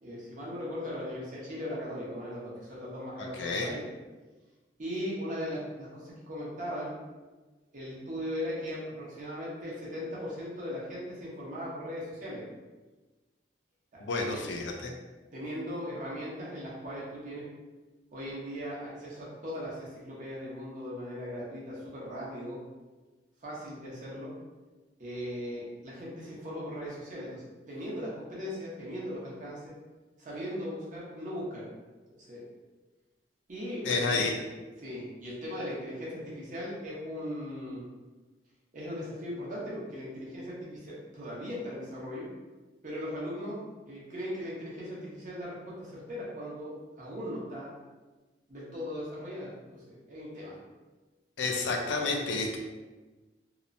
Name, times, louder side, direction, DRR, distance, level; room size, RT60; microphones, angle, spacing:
voice 1, 0.0-3.8 4.8-6.9 7.7-12.4 14.2-14.4 15.3-17.4 18.1-22.6 23.4-24.3 25.0-29.7 30.2-31.6 32.2-32.4 33.5-34.2 34.8-37.8 38.7-42.3 42.8-47.7 48.5-50.6, equal, 45° right, -6 dB, 0.8 m, -38 dB
voice 2, 3.2-3.7 14.0-14.9 33.8-34.3 51.4-52.6, left 3 dB, 80° left, 2 dB, 0.4 m, -30 dB
2.9 x 2.0 x 2.5 m, 1.2 s
head